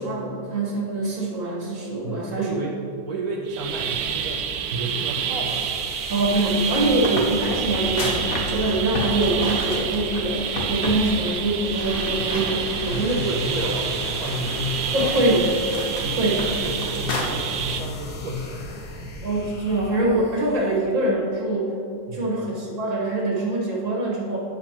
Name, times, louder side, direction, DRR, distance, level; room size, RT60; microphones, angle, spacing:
voice 1, 0.0-2.6 6.1-13.3 14.9-15.6 16.2-16.5 19.2-21.7 22.1-24.4, right 2 dB, 45° right, -3 dB, 1.7 m, -24 dB
voice 2, 2.0-2.7 3.0-5.7 12.8-15.1 16.0-18.7 22.1-22.4, right 1 dB, 65° right, -2 dB, 0.9 m, -31 dB
sound 1, 3.5-17.8, right 7 dB, 85° right, 1.3 m, -28 dB
sound 2, 5.4-20.8, left 2 dB, 90° left, 1.6 m, -38 dB
sound 3, 6.6-10.2 10.6-11.0 11.3-11.4 11.8-13.2 13.6-17.2, left 2 dB, 55° left, 1.4 m, -32 dB
10.0 x 6.1 x 2.9 m, 2.8 s
omnidirectional pair, 1.9 m